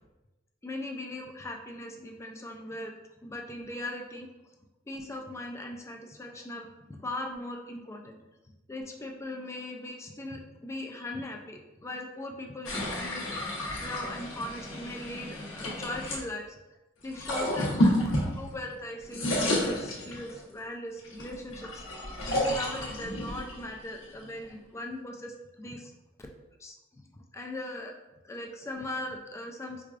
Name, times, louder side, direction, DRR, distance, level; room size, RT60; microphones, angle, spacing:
voice 1, 0.6-2.9 3.2-4.3 4.9-8.2 8.7-13.4 13.7-16.6 17.0-18.0 18.4-21.8 22.3-25.9 26.6-27.9 28.2-29.8, left 1 dB, 15° left, 1 dB, 0.3 m, -39 dB
sound 1, 12.7-16.2 17.0-18.8 19.0-20.5 21.0-24.5, left 1 dB, 80° left, 0.9 m, -31 dB
4.7 x 2.3 x 2.4 m, 1.0 s
head